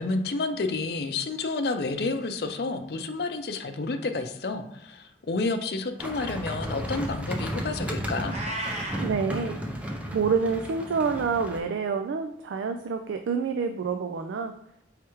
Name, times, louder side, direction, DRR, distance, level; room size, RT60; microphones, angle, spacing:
voice 1, 0.0-8.4, left 3 dB, 60° left, 7 dB, 0.5 m, -30 dB
sound 1, 6.0-11.6, equal, 5° right, 0.4 m, -34 dB
Meow, 8.2-9.1, right 1 dB, 35° right, 0.8 m, -33 dB
voice 2, 9.0-9.6 10.1-14.5, right 5 dB, 90° right, 6 dB, 0.3 m, -27 dB
4.8 x 3.2 x 3.0 m, 0.80 s
head